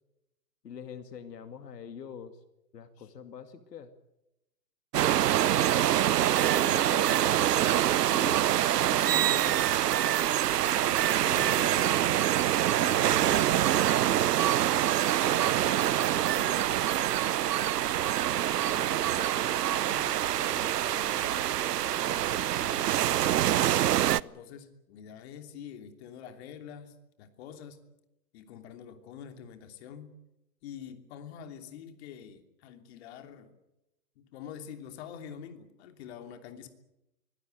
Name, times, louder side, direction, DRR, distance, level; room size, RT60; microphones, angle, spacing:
voice 1, 0.6-2.4 2.7-3.9 8.1-8.5, left 7 dB, 75° left, 9 dB, 2.4 m, -44 dB
sound 1, 4.9-24.2, right 12 dB, 70° right, 0.8 m, -25 dB
voice 2, 6.6-9.7 10.6-12.0 12.8-16.9 18.5-21.5 21.8-23.0 24.2-27.8 28.3-30.1 30.6-33.5 34.2-36.7, left 8 dB, 40° left, 7 dB, 3.1 m, -46 dB
24.0 x 17.5 x 9.3 m, 0.92 s
hypercardioid pair, 145°, 49 cm